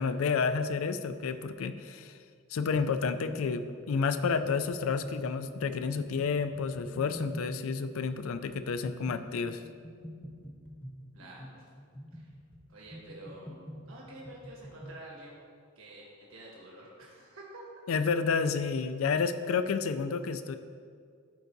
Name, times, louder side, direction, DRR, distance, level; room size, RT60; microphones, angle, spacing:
voice 1, 0.0-2.1 2.5-9.6 17.9-20.6, left 5 dB, 75° left, 10 dB, 0.4 m, -30 dB
sound 1, 2.8-15.0, equal, 10° left, 0.8 m, -45 dB
voice 2, 11.1-11.6 12.1-12.3 12.7-13.5 13.8-15.4 15.7-17.6, right 1 dB, 70° right, -4 dB, 1.4 m, -49 dB
12.5 x 4.7 x 2.7 m, 2.2 s
head